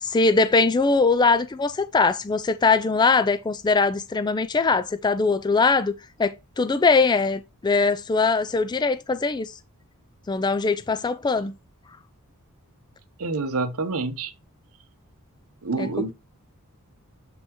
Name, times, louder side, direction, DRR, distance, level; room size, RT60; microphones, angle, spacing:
voice 1, 0.0-5.9 6.2-9.6 10.3-11.5 15.8-16.1, left 4 dB, 20° left, 0.3 m, -21 dB
voice 2, 13.2-14.3 15.6-16.1, right 3 dB, 75° right, 0.9 m, -27 dB
7.7 x 5.4 x 2.9 m
head